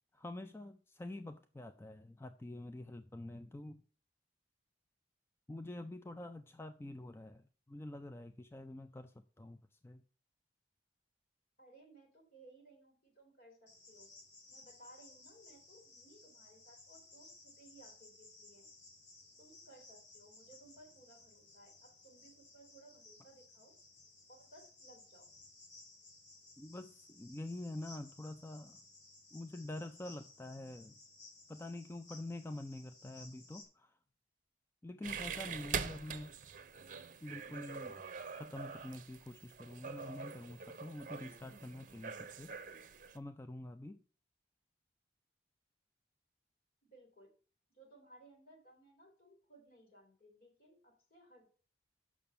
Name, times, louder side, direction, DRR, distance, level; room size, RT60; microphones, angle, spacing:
voice 1, 0.1-3.8 5.5-10.0 26.6-28.8 29.3-31.0 31.5-34.0 34.8-36.4 37.2-38.0 38.3-42.5 43.1-44.0, left 1 dB, 15° left, 9 dB, 0.4 m, -47 dB
voice 2, 11.6-14.1 14.5-18.7 19.4-23.7 24.3-25.3 46.9-47.3 47.7-51.5, right 1 dB, 55° left, 2 dB, 3.3 m, -61 dB
Cricket, 13.7-33.6, left 2 dB, 85° left, 3.2 m, -59 dB
sound 1, 35.0-43.2, right 6 dB, 45° right, 0.7 m, -44 dB
6.9 x 6.1 x 6.9 m, 0.41 s
head